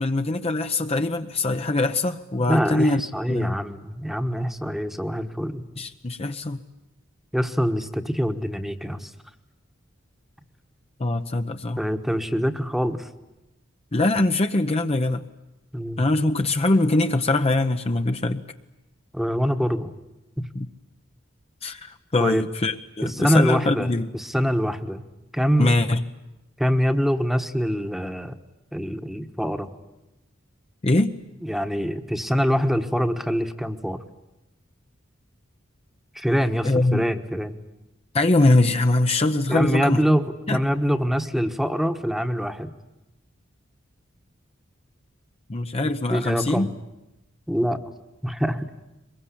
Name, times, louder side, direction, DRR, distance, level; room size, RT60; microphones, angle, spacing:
voice 1, 0.0-3.0 3.3-3.5 5.8-6.6 11.0-11.8 13.9-15.2 16.0-18.4 20.5-20.7 21.6-24.1 25.6-26.0 30.8-31.1 36.6-37.0 38.1-40.0 40.5-40.6 45.5-46.7, left 2 dB, 30° left, 6 dB, 0.8 m, -22 dB
voice 2, 2.4-5.6 7.3-9.1 11.8-13.1 15.7-16.0 19.1-19.9 20.4-20.5 22.2-22.4 23.0-25.0 25.3-25.7 26.6-28.4 28.7-29.7 31.4-34.0 36.1-37.6 39.5-42.7 45.8-46.7 47.5-47.8 48.2-48.7, equal, ahead, 8 dB, 1.3 m, -24 dB
23.5 x 22.0 x 10.0 m, 0.96 s
head